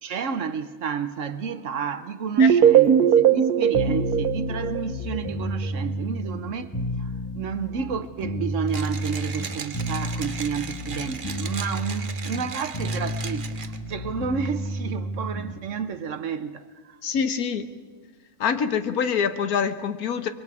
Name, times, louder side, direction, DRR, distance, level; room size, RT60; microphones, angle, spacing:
voice 1, 0.0-6.7 7.0-17.0, right 6 dB, 60° right, 1.1 m, -31 dB
sound 1, 2.4-5.3, right 9 dB, 85° right, 1.5 m, -19 dB
sound 2, 3.7-15.6, equal, 20° left, 1.5 m, -31 dB
Mechanisms, 8.7-13.9, right 5 dB, 40° right, 0.9 m, -37 dB
voice 2, 17.0-17.7 18.4-20.3, left 6 dB, 75° left, 1.5 m, -25 dB
24.5 x 22.5 x 4.8 m
omnidirectional pair, 1.6 m